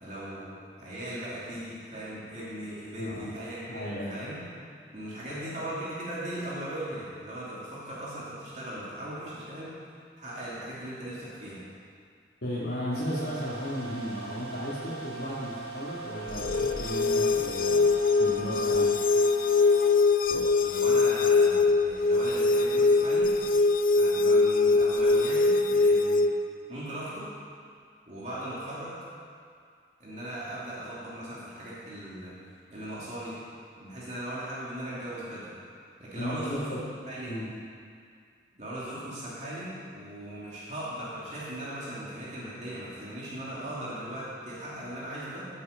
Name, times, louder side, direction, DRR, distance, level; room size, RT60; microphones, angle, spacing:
voice 1, 0.0-4.4 4.9-9.7 10.2-11.6 20.6-23.3 24.0-26.2 26.7-27.3 28.1-29.0 30.0-32.3 32.7-33.4 33.8-35.5 36.0-36.8 37.1-37.3 38.5-45.4, right 1 dB, 40° right, -8 dB, 2.9 m, -38 dB
voice 2, 3.7-4.2 5.3-5.6 12.4-17.9 18.2-19.0 36.1-36.8 37.3-37.5, equal, 85° left, -11 dB, 2.7 m, -35 dB
sound 1, 12.9-20.0, right 4 dB, 65° right, 2.0 m, -41 dB
sound 2, 16.3-26.3, left 3 dB, 50° left, 0.6 m, -23 dB
16.5 x 8.6 x 5.3 m, 2.2 s
head